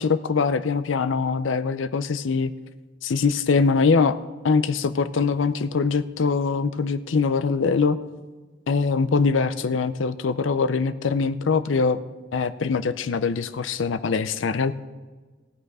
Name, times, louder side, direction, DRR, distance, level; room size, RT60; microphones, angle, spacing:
voice 1, 0.0-2.5 3.0-4.2 4.4-8.0 8.7-12.0 12.3-14.8, left 4 dB, 80° left, 13 dB, 0.5 m, -23 dB
16.0 x 9.1 x 4.8 m, 1.3 s
head